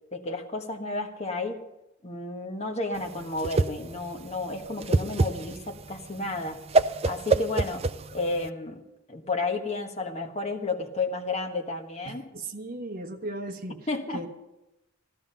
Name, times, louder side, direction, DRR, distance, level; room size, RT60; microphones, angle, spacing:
voice 1, 0.1-1.6 2.0-6.6 7.0-8.8 9.1-12.2 13.9-14.3, left 3 dB, 35° left, 3 dB, 1.4 m, -32 dB
Whoosh swoosh swish, 3.0-8.5, right 3 dB, 30° right, 0.5 m, -26 dB
voice 2, 12.0-13.9 14.1-14.3, right 2 dB, 50° right, 3 dB, 1.2 m, -37 dB
15.0 x 12.5 x 5.7 m, 0.96 s
head